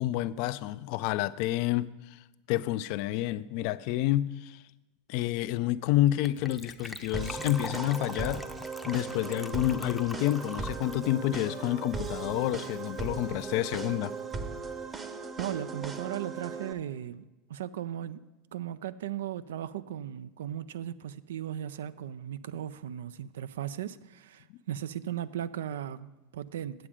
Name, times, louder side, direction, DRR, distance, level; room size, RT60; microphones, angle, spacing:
voice 1, 0.0-2.2 2.5-4.6 5.1-8.4 8.9-14.1, left 14 dB, 60° left, 0.3 m, -29 dB
Gurgling / Trickle dribble / Fill (with liquid), 6.3-12.5 12.7-12.8 13.0-13.2 13.5-13.6, left 2 dB, ahead, 0.6 m, -43 dB
sound 1, 7.1-16.7, right 4 dB, 25° right, 0.8 m, -38 dB
voice 2, 15.4-17.2 17.5-18.2 18.5-26.7, right 11 dB, 80° right, 0.3 m, -37 dB
8.6 x 7.5 x 5.0 m
hypercardioid pair, 95°, 0 cm